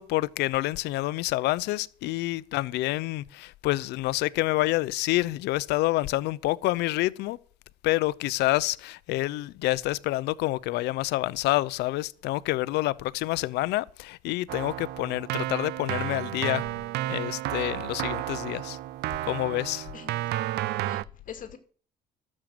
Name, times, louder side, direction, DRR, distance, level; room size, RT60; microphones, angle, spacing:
voice 1, 0.0-7.4 7.8-16.7 17.1-18.8 19.2-19.9, left 18 dB, 85° left, 0.6 m, -28 dB
Keyboard (musical), 14.5-21.0, right 15 dB, 75° right, 0.5 m, -32 dB
voice 2, 19.9-21.6, left 8 dB, 55° left, 2.3 m, -45 dB
12.5 x 7.5 x 7.7 m
cardioid pair, 110°, 17 cm